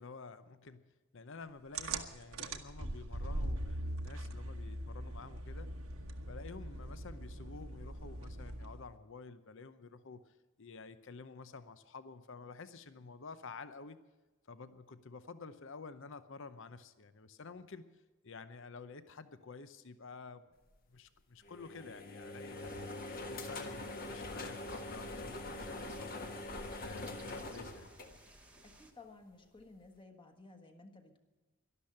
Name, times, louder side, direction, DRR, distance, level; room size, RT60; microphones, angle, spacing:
voice 1, 0.0-5.7 6.2-14.0 14.5-17.9 18.2-20.5 20.9-22.7 23.2-26.3 26.8-27.9, left 4 dB, 60° left, 12 dB, 0.7 m, -50 dB
sound 1, 1.7-8.9, right 1 dB, 75° right, 1.2 m, -41 dB
sound 2, 21.4-28.7, left 2 dB, 45° left, 1.4 m, -44 dB
sound 3, 22.5-28.9, right 1 dB, 5° right, 1.2 m, -57 dB
voice 2, 28.6-31.2, left 3 dB, 25° left, 5 dB, 1.4 m, -56 dB
12.0 x 12.0 x 8.6 m, 1.2 s
head